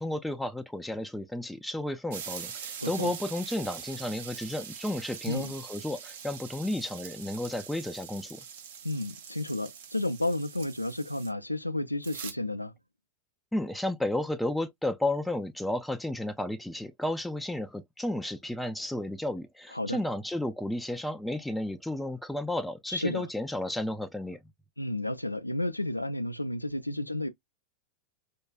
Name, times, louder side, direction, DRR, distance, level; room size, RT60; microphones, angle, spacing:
voice 1, 0.0-8.4 13.5-24.4, left 1 dB, 5° left, 0.3 m, -33 dB
sound 1, 2.1-11.3 12.0-12.3, right 8 dB, 55° right, 0.7 m, -43 dB
voice 2, 2.8-3.1 5.3-5.5 8.8-12.7 19.7-20.0 22.9-23.3 24.8-27.3, left 1 dB, 85° left, 0.4 m, -32 dB
4.5 x 2.3 x 2.3 m
figure-of-eight pair, 90°, 0 cm